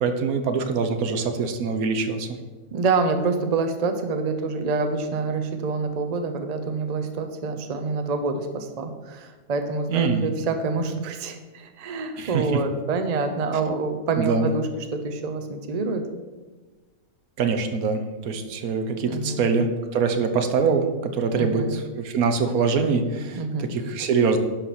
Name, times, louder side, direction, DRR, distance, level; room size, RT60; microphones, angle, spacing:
voice 1, 0.0-2.4 9.9-10.3 12.2-12.6 14.2-14.5 17.4-24.4, right 5 dB, 85° right, 7 dB, 1.3 m, -24 dB
voice 2, 2.7-16.1 19.0-19.5 21.3-21.8 23.3-23.8, right 4 dB, 40° right, 7 dB, 0.6 m, -27 dB
10.5 x 6.1 x 4.2 m, 1.3 s
omnidirectional pair, 1.5 m